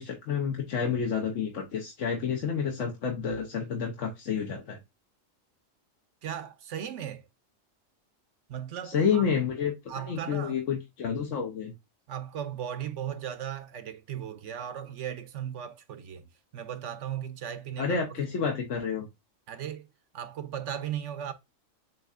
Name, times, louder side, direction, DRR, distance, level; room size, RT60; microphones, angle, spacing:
voice 1, 0.0-4.8 8.8-9.7 10.1-11.7 17.8-19.1, left 6 dB, 70° left, 1.2 m, -29 dB
voice 2, 6.2-7.2 8.5-9.3 9.9-10.6 12.1-18.2 19.5-19.9 20.1-21.3, right 9 dB, 70° right, 0.9 m, -37 dB
7.4 x 2.7 x 2.4 m
omnidirectional pair, 1.4 m